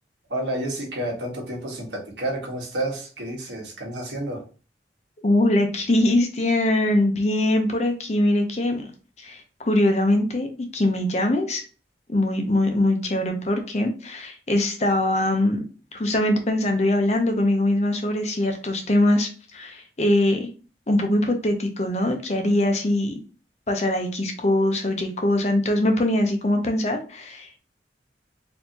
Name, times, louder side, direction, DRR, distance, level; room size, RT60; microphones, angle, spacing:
voice 1, 0.3-4.4, right 1 dB, 80° right, -1 dB, 1.4 m, -30 dB
voice 2, 5.2-8.9 9.2-10.5 10.7-11.6 12.1-15.6 15.9-20.5 20.9-23.2 23.7-27.6, left 1 dB, 40° left, 5 dB, 0.7 m, -22 dB
4.4 x 2.8 x 2.8 m, 0.36 s
head